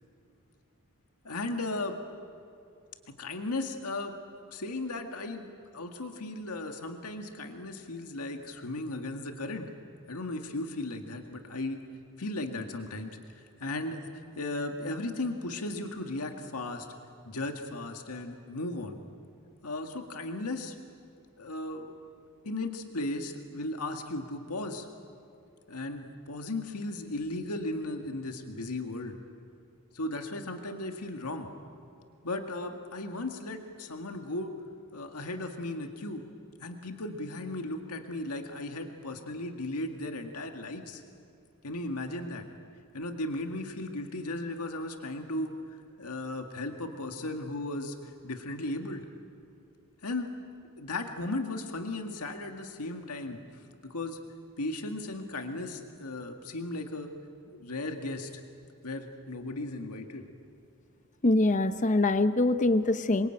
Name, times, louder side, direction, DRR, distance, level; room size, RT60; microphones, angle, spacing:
voice 1, 1.2-2.0 3.2-4.2 4.5-9.7 10.1-11.8 12.2-16.9 17.2-19.0 19.6-20.8 21.4-22.0 22.4-24.9 25.7-29.2 29.9-31.5 32.2-34.5 34.9-36.2 36.6-41.0 41.6-42.5 42.9-49.0 50.0-50.3 50.8-54.2 54.6-57.1 57.5-58.3 58.8-60.3, left 2 dB, 90° left, 4 dB, 1.9 m, -36 dB
voice 2, 61.2-63.3, left 2 dB, 35° left, 11 dB, 0.8 m, -24 dB
27.5 x 23.5 x 9.0 m, 2.5 s
head